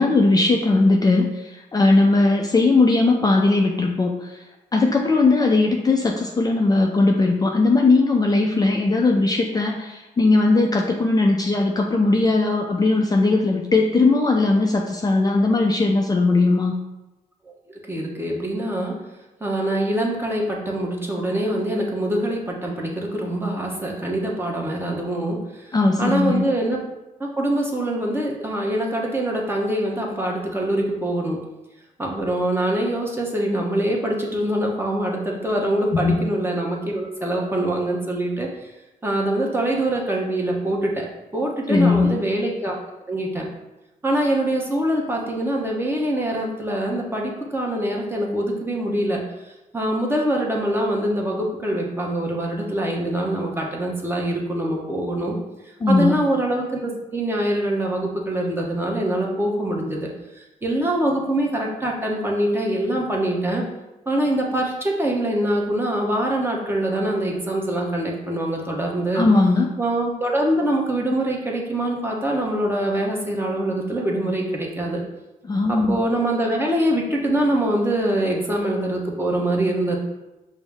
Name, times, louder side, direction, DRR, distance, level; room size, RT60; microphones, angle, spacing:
voice 1, 0.0-4.3 4.7-16.7 25.7-26.4 35.9-36.2 41.7-42.1 55.8-56.2 69.1-69.7 75.5-76.0, left 3 dB, 25° left, 1 dB, 0.4 m, -18 dB
voice 2, 17.7-19.0 19.4-25.4 26.0-26.8 27.2-31.4 32.0-38.5 39.0-41.1 41.3-42.8 43.1-43.5 44.0-49.2 49.7-55.4 55.9-60.1 60.4-63.6 64.1-69.3 69.8-75.0 75.7-80.0, right 1 dB, 15° right, -1 dB, 0.9 m, -24 dB
5.3 x 2.1 x 3.4 m, 1.0 s
cardioid pair, 75°, 15 cm